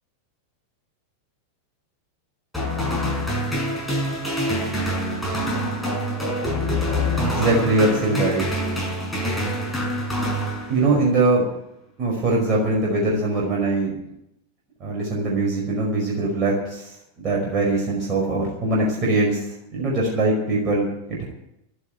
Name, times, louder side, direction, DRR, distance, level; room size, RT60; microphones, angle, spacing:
sound 1, 2.5-11.1, equal, 5° left, 5.9 m, -25 dB
voice 1, 7.1-8.5 10.7-11.5 12.0-13.9 14.8-21.2, right 2 dB, 30° right, -3 dB, 5.3 m, -22 dB
12.0 x 11.5 x 9.4 m, 0.82 s
figure-of-eight pair, 90°, 0 cm